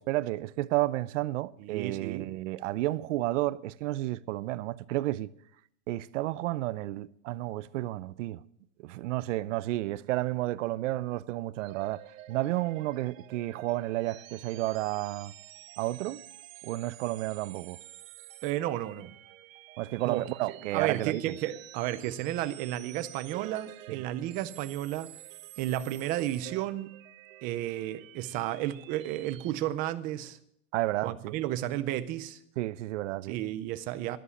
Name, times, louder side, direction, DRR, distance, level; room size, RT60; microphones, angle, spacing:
voice 1, 0.0-5.3 5.9-8.4 8.8-12.0 12.3-15.3 15.8-16.2 16.6-17.8 19.8-21.4 23.9-24.0 30.7-31.3 32.6-33.4, right 16 dB, 65° right, 0.7 m, -31 dB
voice 2, 1.6-2.3 18.4-19.1 20.0-20.2 20.5-25.1 25.6-27.0 27.4-30.4 31.0-32.4 33.3-34.2, right 13 dB, 20° right, 0.5 m, -33 dB
sound 1, 11.6-29.5, right 14 dB, 80° right, 1.0 m, -50 dB
12.5 x 11.0 x 8.3 m
supercardioid pair, 175°, 40 cm